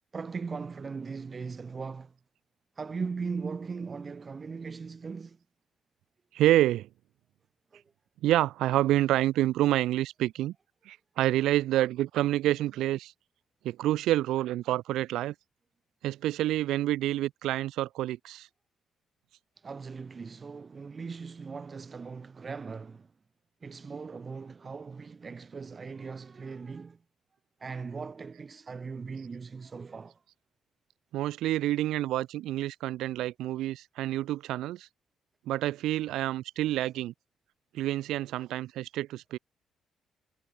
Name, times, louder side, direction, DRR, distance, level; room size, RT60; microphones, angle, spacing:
voice 1, 0.1-2.1 2.8-5.4 7.7-7.8 19.6-23.1 23.6-27.0 27.6-30.2, right 5 dB, 35° right, 0.8 m, -39 dB
voice 2, 6.3-6.9 8.2-10.5 10.8-13.1 13.6-15.3 16.0-18.5 31.1-34.9 35.5-37.1 37.7-39.4, right 14 dB, 65° right, 1.4 m, -28 dB
hypercardioid pair, 45°, 0 cm